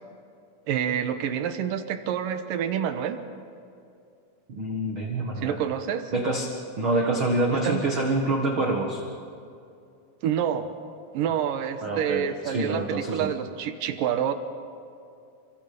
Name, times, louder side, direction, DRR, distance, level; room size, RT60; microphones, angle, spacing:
voice 1, 0.7-3.2 5.4-6.1 7.5-7.9 10.2-10.7 11.1-14.3, right 9 dB, 70° right, 9 dB, 2.4 m, -28 dB
voice 2, 4.5-5.6 6.1-6.5 6.8-9.0 11.8-13.3, right 2 dB, 45° right, 0 dB, 1.7 m, -26 dB
29.5 x 25.5 x 5.2 m, 2.5 s
omnidirectional pair, 4.5 m